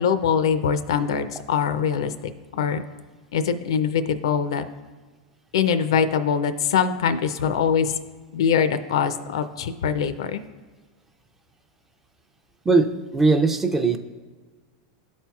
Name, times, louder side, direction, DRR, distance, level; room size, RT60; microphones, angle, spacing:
voice 1, 0.0-2.1 2.5-2.8 3.3-4.6 5.5-8.0 8.3-10.4, left 7 dB, 85° left, 11 dB, 0.5 m, -23 dB
voice 2, 12.6-14.0, right 3 dB, 10° right, 7 dB, 0.4 m, -20 dB
12.5 x 4.3 x 2.3 m, 1.4 s
supercardioid pair, 140°, 3 cm